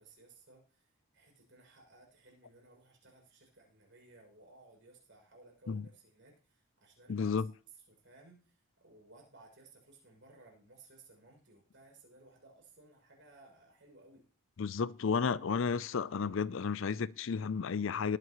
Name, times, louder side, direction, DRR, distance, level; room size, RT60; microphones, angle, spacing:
voice 1, 0.0-7.4 7.7-14.2, right 2 dB, 55° right, 6.5 m, -60 dB
voice 2, 7.1-7.5 14.6-18.2, left 5 dB, 60° left, 0.4 m, -32 dB
20.0 x 9.3 x 3.1 m
head